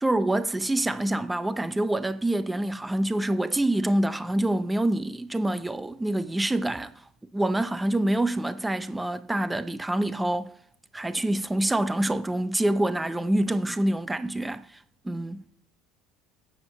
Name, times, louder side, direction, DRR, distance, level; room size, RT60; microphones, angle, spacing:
voice 1, 0.0-6.9 7.3-10.5 10.9-15.4, right 1 dB, 5° right, 0.6 m, -26 dB
18.0 x 8.1 x 7.1 m
cardioid pair, 145°, 0 cm